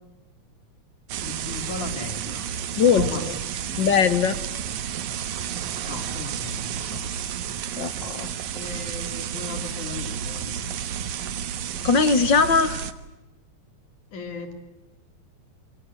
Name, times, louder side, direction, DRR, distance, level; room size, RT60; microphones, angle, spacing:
sound 1, 1.1-12.9, right 8 dB, 75° right, 2.7 m, -31 dB
voice 1, 1.2-2.5 2.9-4.1 5.9-7.2 8.5-10.8 14.1-14.5, left 4 dB, 85° left, 7 dB, 4.7 m, -37 dB
voice 2, 3.8-4.3 7.8-8.3 11.8-12.8, left 6 dB, 50° left, 14 dB, 1.7 m, -20 dB
25.5 x 25.0 x 8.9 m, 1.0 s
omnidirectional pair, 3.4 m